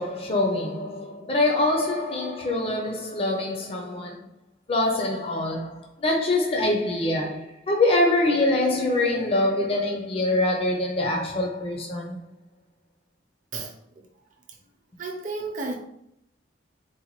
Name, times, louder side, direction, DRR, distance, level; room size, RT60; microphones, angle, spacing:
voice 1, 0.0-4.3 4.7-12.2, left 2 dB, 30° left, 0.5 m, -24 dB
voice 2, 15.0-15.8, right 3 dB, 40° right, 0.6 m, -31 dB
3.9 x 2.2 x 2.9 m
head